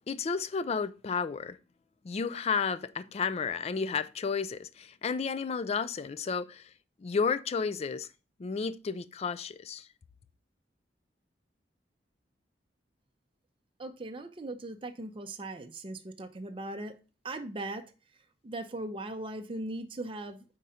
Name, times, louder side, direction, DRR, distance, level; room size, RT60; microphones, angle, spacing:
voice 1, 0.1-1.6 2.0-6.6 7.0-8.1 8.4-9.9, left 5 dB, 35° left, 0.3 m, -32 dB
voice 2, 13.8-17.0 17.2-17.9 18.4-20.4, right 2 dB, 30° right, 0.6 m, -39 dB
5.5 x 3.7 x 5.5 m
head